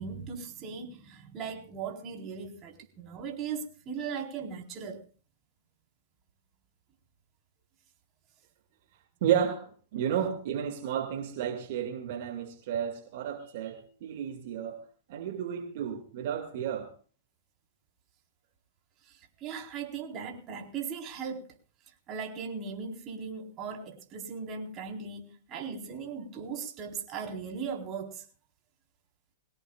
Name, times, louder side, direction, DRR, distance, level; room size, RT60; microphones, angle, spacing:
voice 1, 0.0-5.0 19.0-21.5 22.1-28.2, right 6 dB, 30° right, 4.2 m, -38 dB
voice 2, 9.2-14.8 15.1-16.9, right 9 dB, 55° right, 2.2 m, -32 dB
22.0 x 17.5 x 2.4 m
hypercardioid pair, 125°, 0 cm